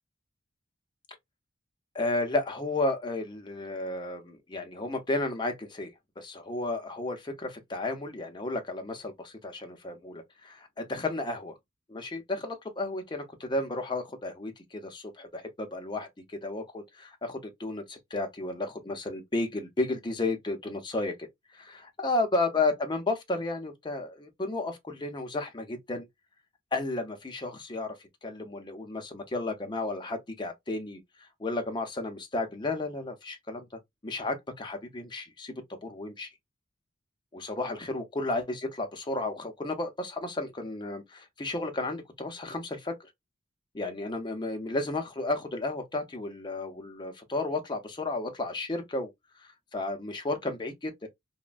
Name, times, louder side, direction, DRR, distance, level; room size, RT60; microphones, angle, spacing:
voice 1, 1.9-11.5 12.0-21.1 21.5-26.1 26.7-28.0 28.2-31.0 31.4-33.7 34.0-35.5 35.8-36.3 37.3-43.0 43.7-49.1 49.4-50.9, left 2 dB, 25° left, 0.6 m, -33 dB
3.1 x 2.1 x 2.4 m
head